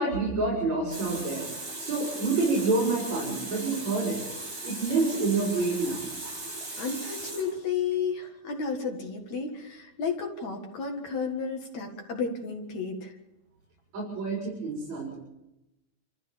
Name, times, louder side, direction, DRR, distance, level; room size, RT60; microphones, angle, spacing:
voice 1, 0.0-1.5 1.8-4.2 4.6-6.0 13.9-15.2, right 3 dB, 55° right, -4 dB, 6.5 m, -28 dB
Water tap faucet, 0.9-7.9, right 2 dB, 35° right, 8.2 m, -38 dB
voice 2, 6.7-13.1, left 5 dB, 60° left, 3 dB, 2.9 m, -32 dB
28.5 x 14.0 x 7.2 m, 0.94 s
omnidirectional pair, 3.9 m